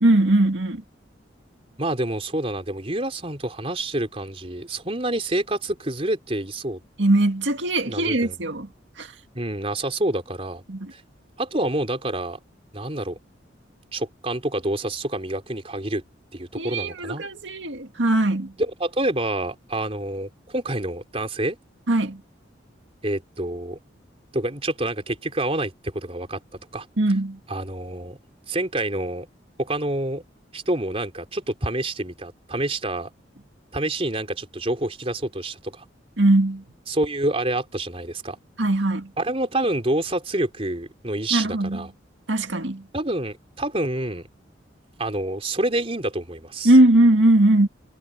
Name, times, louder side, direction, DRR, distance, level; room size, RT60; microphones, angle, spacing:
voice 1, 0.0-0.8 7.0-8.7 9.0-9.1 10.7-10.9 16.6-18.5 21.9-22.2 27.0-27.4 36.2-36.6 38.6-39.1 41.3-41.9 42.3-42.8 46.6-47.7, right 1 dB, 75° right, 2.1 m, -20 dB
voice 2, 1.8-6.8 7.9-8.4 9.3-10.6 10.9-11.0 11.4-12.4 12.7-13.2 13.9-16.0 16.3-17.2 18.6-21.6 23.0-23.8 24.3-26.4 26.7-26.9 27.5-28.2 28.5-29.3 29.6-30.2 30.5-33.1 33.7-35.8 36.9-38.4 39.2-41.9 42.9-44.3 45.0-46.7, right 1 dB, 30° right, 3.9 m, -27 dB
head